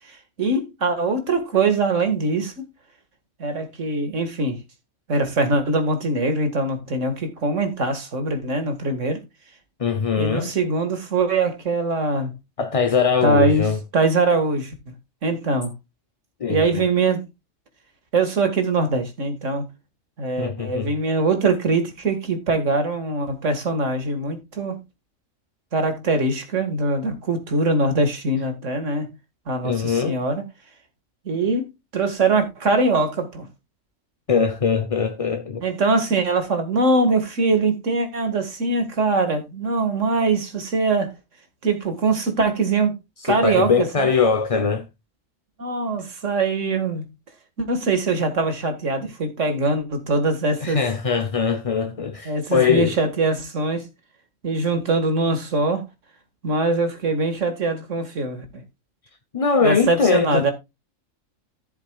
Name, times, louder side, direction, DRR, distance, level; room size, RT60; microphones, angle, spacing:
voice 1, 0.4-2.6 3.4-4.6 5.1-9.2 10.2-12.3 13.2-14.7 15.2-15.7 16.5-17.2 18.1-19.7 20.2-24.8 25.7-29.2 29.5-30.4 31.3-31.7 31.9-33.5 35.6-41.1 41.6-42.9 43.2-44.1 45.6-47.1 47.6-50.9 52.3-53.9 54.4-55.8 56.4-58.6 59.6-60.5, right 3 dB, 70° right, 2.2 m, -22 dB
voice 2, 9.8-10.5 12.6-13.8 16.4-16.9 20.4-20.9 29.6-30.2 34.3-35.6 43.3-44.8 50.6-52.9 59.3-60.5, left 6 dB, 35° left, 0.6 m, -21 dB
14.5 x 7.3 x 2.3 m
omnidirectional pair, 1.4 m